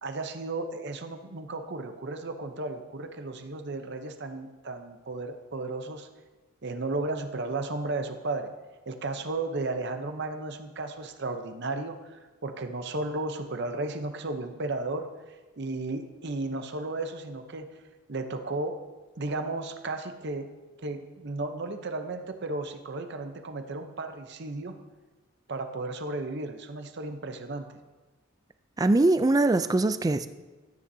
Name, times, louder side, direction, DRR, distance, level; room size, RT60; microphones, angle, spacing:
voice 1, 0.0-6.1 6.6-8.5 8.9-17.7 18.1-18.8 19.2-20.5 20.8-24.7 25.5-27.7, right 2 dB, 55° right, 7 dB, 0.7 m, -34 dB
voice 2, 28.8-30.3, right 2 dB, 20° right, 11 dB, 0.3 m, -22 dB
13.0 x 9.5 x 2.7 m, 1.2 s
head